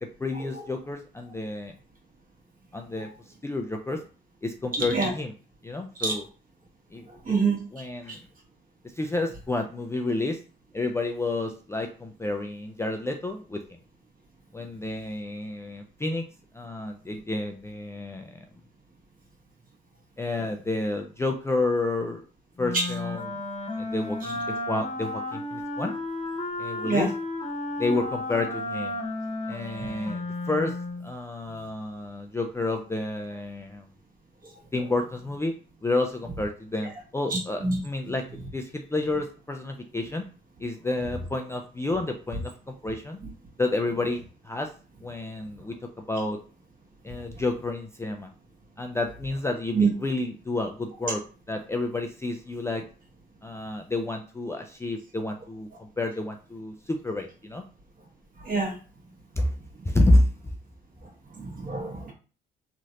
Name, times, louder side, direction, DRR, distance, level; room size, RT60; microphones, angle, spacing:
voice 1, 0.0-1.7 2.7-3.1 3.4-4.0 4.4-5.3 5.6-6.2 6.9-7.3 7.7-8.2 9.0-10.4 10.7-13.6 14.5-16.2 16.5-18.3 20.2-22.2 22.6-23.4 23.8-25.9 26.6-27.1 27.8-29.0 29.5-30.8 31.0-33.9 34.7-35.5 35.8-38.3 38.5-40.2 40.6-43.2 43.6-44.7 45.0-46.4 47.0-48.3 48.8-51.2 51.5-52.8 53.4-57.6 59.4-59.5 59.9-60.3, left 2 dB, 15° left, 3 dB, 0.4 m, -29 dB
voice 2, 4.7-5.1 6.0-6.2 7.1-7.6 8.1-8.2 22.7-22.9 26.8-27.1 29.8-29.9 34.4-34.5 37.3-37.8 49.7-49.9 58.4-58.7 61.3-62.1, right 4 dB, 45° right, -1 dB, 1.4 m, -26 dB
Wind instrument woodwind instrument, 22.6-31.1, left 2 dB, 30° left, 0.9 m, -33 dB
3.1 x 2.5 x 2.8 m, 0.37 s
cardioid pair, 90°, 20 cm